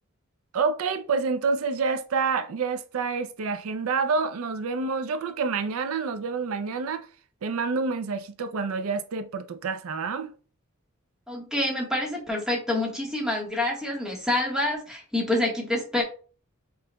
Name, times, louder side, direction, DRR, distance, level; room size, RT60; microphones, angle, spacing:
voice 1, 0.5-7.1 7.4-10.3, right 4 dB, 85° right, 0.5 m, -28 dB
voice 2, 11.3-16.0, left 1 dB, 5° right, 1.4 m, -27 dB
5.5 x 3.9 x 2.2 m
head